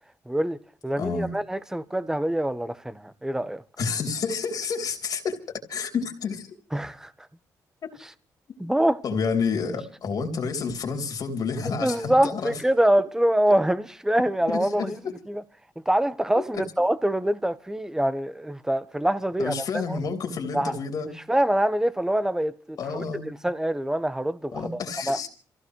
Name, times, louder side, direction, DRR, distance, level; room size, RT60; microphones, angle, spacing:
voice 1, 0.3-0.6 0.8-3.6 6.7-7.1 8.6-9.0 11.7-15.0 15.3-15.4 15.9-19.5 19.9-20.0 20.5-20.7 21.3-24.8 25.1-25.2, right 1 dB, 5° right, 1.1 m, -25 dB
voice 2, 1.0-1.3 3.8-6.5 7.8-7.9 8.5-8.6 9.0-12.5 14.5-15.1 16.4-16.6 19.4-21.1 22.8-23.2 24.5-25.3, left 5 dB, 60° left, 3.4 m, -29 dB
27.0 x 16.0 x 3.2 m
cardioid pair, 80°, 7 cm